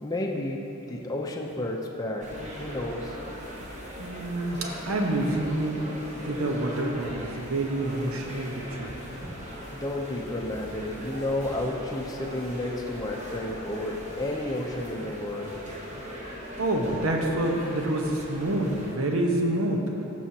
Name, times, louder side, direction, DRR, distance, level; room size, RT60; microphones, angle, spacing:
voice 1, 0.0-3.1 9.7-15.6, left 1 dB, 15° left, -1 dB, 0.6 m, -32 dB
sound 1, 2.2-18.9, equal, 35° right, 1.2 m, -40 dB
Thump thud, 3.6-4.0 5.3-5.6 7.0-7.4 8.7-9.1 10.4-11.0, equal, 55° right, 1.2 m, -48 dB
voice 2, 4.0-5.8 6.2-9.0 16.6-19.9, right 1 dB, 75° right, 0 dB, 1.0 m, -27 dB
14.5 x 6.2 x 2.8 m, 3.0 s
head